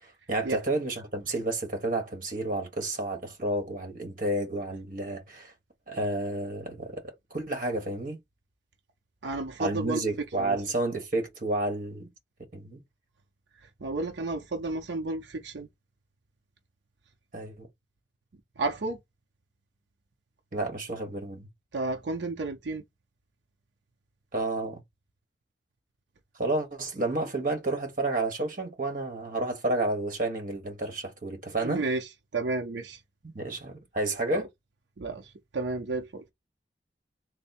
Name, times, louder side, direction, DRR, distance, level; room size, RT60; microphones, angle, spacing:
voice 1, 0.3-5.5 5.9-7.0 7.3-8.2 9.6-12.1 12.5-12.8 17.3-17.7 20.5-21.5 24.3-24.8 26.4-31.8 33.2-34.5, right 2 dB, 50° right, 1.2 m, -30 dB
voice 2, 9.2-10.0 10.4-10.6 13.8-15.7 18.6-19.0 21.7-22.8 31.6-33.0 34.3-34.4 35.0-36.3, right 3 dB, 85° right, 0.7 m, -32 dB
3.5 x 2.1 x 4.2 m
head